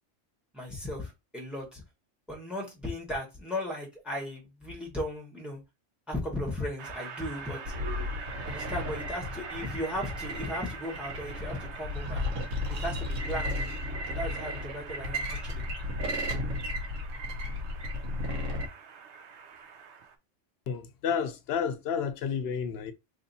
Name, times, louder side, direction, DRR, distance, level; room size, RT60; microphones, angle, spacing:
voice 1, 0.5-1.8 2.3-5.6 6.1-7.7 8.5-12.3 12.7-13.6 14.1-15.6, left 1 dB, ahead, 1.1 m, -36 dB
Train, 6.8-20.2, right 5 dB, 70° right, 0.9 m, -45 dB
sound 1, 7.6-18.7, left 1 dB, 90° right, 1.3 m, -34 dB
voice 2, 20.7-22.9, left 7 dB, 65° left, 0.8 m, -31 dB
3.2 x 2.7 x 4.0 m
omnidirectional pair, 1.2 m